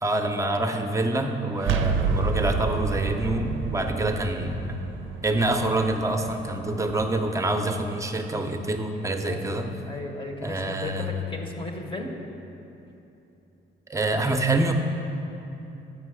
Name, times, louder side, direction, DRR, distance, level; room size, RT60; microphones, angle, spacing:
voice 1, 0.0-4.6 5.2-9.7 10.4-11.1 13.9-14.7, right 2 dB, 15° right, 5 dB, 0.6 m, -26 dB
sound 1, 1.6-7.3, right 5 dB, 75° right, 0.4 m, -29 dB
voice 2, 3.7-4.0 9.2-12.1, left 2 dB, 25° left, 3 dB, 0.8 m, -36 dB
8.3 x 5.2 x 4.8 m, 2.9 s
cardioid pair, 90°, 20 cm